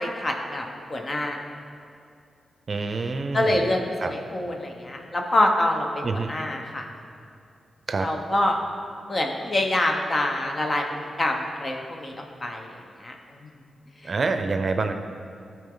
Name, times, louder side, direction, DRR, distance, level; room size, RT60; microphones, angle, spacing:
voice 1, 0.0-0.6 0.9-1.4 3.3-6.8 8.0-8.6 9.1-10.8 11.2-12.1 12.4-12.7 13.0-13.1, left 1 dB, 35° left, 2 dB, 1.1 m, -25 dB
voice 2, 2.7-3.7 4.0-4.1 6.0-6.3 7.9-8.1 14.0-14.9, right 3 dB, 50° right, 7 dB, 0.6 m, -26 dB
13.5 x 4.6 x 3.9 m, 2.5 s
cardioid pair, 65°, 0 cm